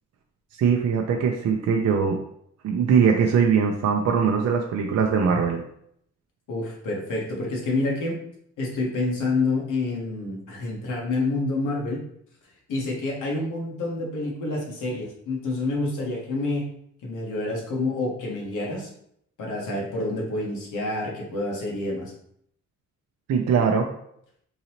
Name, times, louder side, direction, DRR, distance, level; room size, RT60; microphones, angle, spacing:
voice 1, 0.6-2.2 2.6-5.6 23.3-23.9, right 6 dB, 60° right, 2 dB, 0.5 m, -21 dB
voice 2, 6.5-8.2 8.6-12.0 12.7-16.7 17.0-18.9 19.4-22.1, left 2 dB, 90° left, -2 dB, 1.2 m, -28 dB
3.8 x 2.8 x 2.9 m, 0.70 s
cardioid pair, 105°, 30 cm